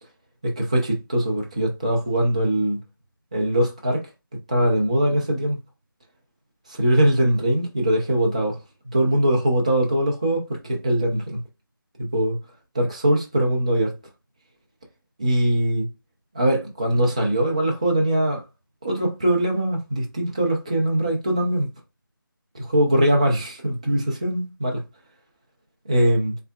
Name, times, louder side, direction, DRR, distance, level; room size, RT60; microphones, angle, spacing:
voice 1, 0.4-2.8 3.3-4.0 4.5-5.6 6.7-8.6 8.9-11.4 12.0-12.4 12.7-13.9 15.2-15.9 16.3-18.4 18.8-21.7 22.5-24.8 25.9-26.3, right 1 dB, 20° right, 0.5 m, -21 dB
3.2 x 2.8 x 2.3 m
figure-of-eight pair, 170°, 12 cm